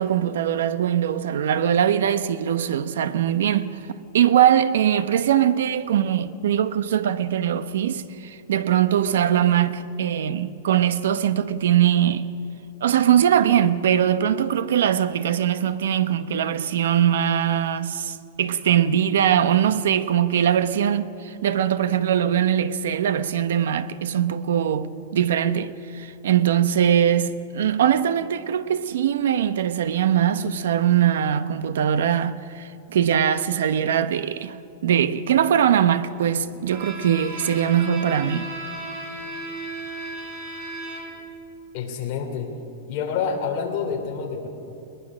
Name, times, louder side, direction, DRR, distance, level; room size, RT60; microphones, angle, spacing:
voice 1, 0.0-3.8 4.1-12.3 12.8-34.6 34.8-38.5, right 9 dB, 80° right, 1.0 m, -21 dB
Bowed string instrument, 36.7-41.4, right 2 dB, 25° right, 4.3 m, -35 dB
voice 2, 41.7-42.5 42.9-44.5, left 6 dB, 35° left, 3.2 m, -27 dB
21.5 x 19.5 x 6.3 m
supercardioid pair, 170°, 0 cm